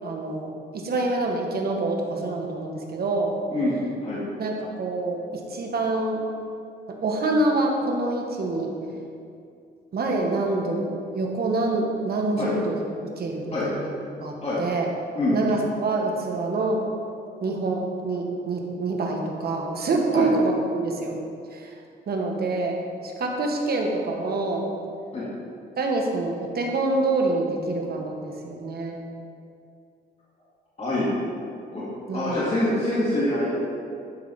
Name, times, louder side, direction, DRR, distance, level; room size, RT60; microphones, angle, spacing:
voice 1, 0.0-3.3 4.4-6.2 6.9-8.7 9.9-10.9 11.1-12.8 13.0-14.9 15.3-16.8 17.4-21.2 21.5-21.7 22.1-22.8 23.0-24.7 25.8-29.0 32.1-32.4, right 2 dB, 55° right, 1 dB, 1.5 m, -26 dB
voice 2, 32.1-33.5, left 1 dB, 35° left, -9 dB, 2.4 m, -25 dB
11.0 x 4.9 x 5.7 m, 2.4 s
cardioid pair, 105°, 19 cm